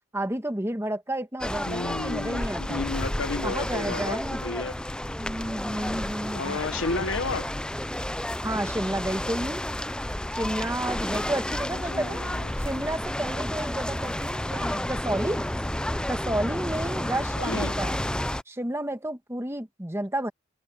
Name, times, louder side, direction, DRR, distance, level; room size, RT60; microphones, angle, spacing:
voice 1, 0.1-2.8 3.4-4.4 5.2-6.8 8.4-9.6 10.3-12.3 12.6-15.5 16.1-18.0 18.5-20.3, right 1 dB, 15° right, 1.4 m, -31 dB
sound 1, 1.4-18.4, left 1 dB, 5° left, 0.4 m, -31 dB
voice 2, 1.7-4.7 6.3-7.5 11.9-12.5 17.4-17.7, left 3 dB, 80° left, 1.2 m, -32 dB
head